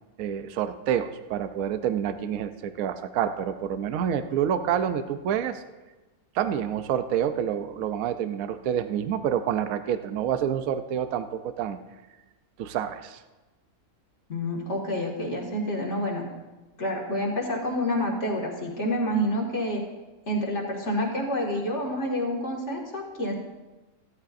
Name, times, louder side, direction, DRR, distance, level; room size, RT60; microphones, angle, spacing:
voice 1, 0.2-5.6 6.3-11.8 12.6-13.2, right 9 dB, 70° right, 10 dB, 1.0 m, -28 dB
voice 2, 14.3-16.2 16.8-19.8 20.3-23.3, equal, 50° left, -1 dB, 2.3 m, -28 dB
17.0 x 13.0 x 2.6 m, 1.1 s
omnidirectional pair, 1.6 m